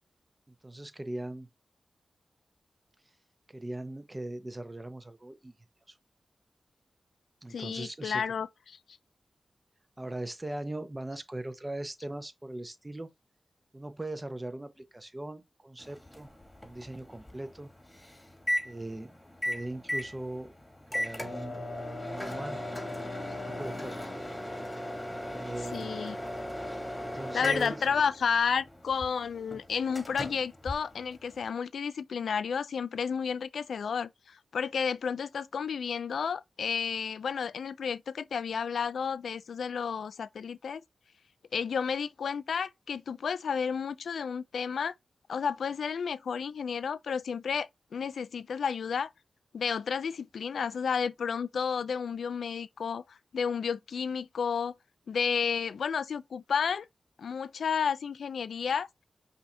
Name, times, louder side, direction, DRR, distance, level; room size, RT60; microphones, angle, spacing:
voice 1, 0.6-1.5 3.5-5.5 7.4-8.2 10.0-13.1 13.7-16.3 16.6-17.7 18.6-19.1 19.5-20.5 20.9-21.6 22.0-22.6 23.3-24.1 25.3-25.9 27.0-27.8, right 1 dB, 25° right, 0.9 m, -39 dB
voice 2, 7.5-8.8 25.7-26.2 27.3-40.8 41.5-44.9 45.3-49.1 49.5-54.7 55.1-56.9 57.2-58.9, left 6 dB, 80° left, 0.3 m, -31 dB
Microwave oven, 15.8-31.5, left 1 dB, 15° left, 1.4 m, -37 dB
5.4 x 2.7 x 3.3 m
cardioid pair, 45°, 0 cm